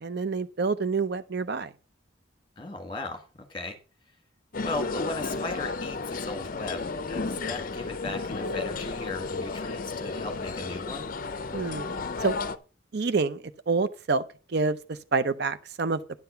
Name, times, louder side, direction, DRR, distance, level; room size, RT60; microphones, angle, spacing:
voice 1, 0.0-1.7 11.5-11.9 12.2-12.3 12.9-14.2 14.5-16.0, right 4 dB, 55° right, 0.5 m, -27 dB
voice 2, 2.6-3.8 4.6-6.8 7.1-11.1, left 2 dB, 25° left, 1.7 m, -37 dB
sound 1, 4.5-12.6, left 3 dB, 45° left, 0.5 m, -33 dB
10.5 x 5.8 x 5.6 m
head